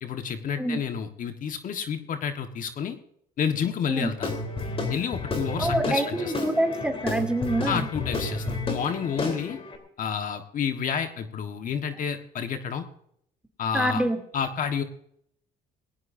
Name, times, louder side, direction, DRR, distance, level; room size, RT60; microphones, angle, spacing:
voice 1, 0.0-3.0 3.4-4.3 4.9-6.3 7.6-9.6 10.0-12.9 13.6-14.0 14.3-14.8, left 7 dB, 50° left, 6 dB, 1.5 m, -30 dB
Guitar / Drum, 4.2-9.8, left 2 dB, 35° left, 3.7 m, -31 dB
voice 2, 5.6-7.9 13.7-14.2, right 1 dB, 5° right, 4 dB, 2.7 m, -26 dB
20.0 x 17.0 x 2.7 m, 0.71 s
cardioid pair, 110°, 17 cm